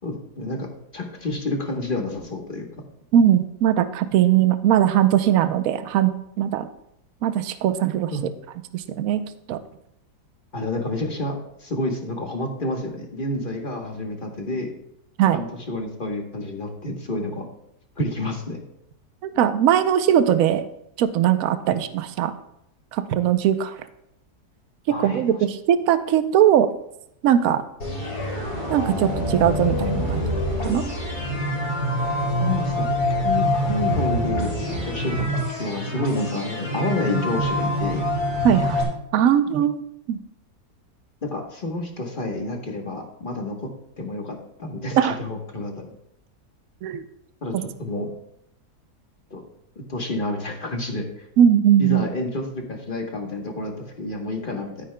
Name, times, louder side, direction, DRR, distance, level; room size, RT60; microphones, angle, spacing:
voice 1, 0.0-0.7 0.9-2.7 8.1-8.2 10.5-14.7 15.3-17.4 18.0-18.6 24.9-25.4 32.4-35.3 35.6-38.0 41.2-43.7 44.0-45.9 47.4-48.1 49.3-49.4 49.7-51.3 51.8-54.9, left 2 dB, 35° left, 2 dB, 1.2 m, -29 dB
voice 2, 3.1-6.1 6.4-6.7 7.2-8.1 8.7-9.2 9.5-9.6 15.2-15.4 19.2-20.6 21.0-22.3 22.9-23.8 24.9-26.7 27.2-27.6 28.7-30.2 30.6-30.8 38.4-38.8 39.1-39.8 40.1-40.2 45.0-45.2 46.8-47.0 47.5-47.6 51.4-52.1, right 10 dB, 70° right, 11 dB, 1.0 m, -20 dB
sound 1, 27.8-38.8, equal, 70° left, 4.5 m, -25 dB
13.0 x 9.5 x 2.2 m, 0.76 s
omnidirectional pair, 1.7 m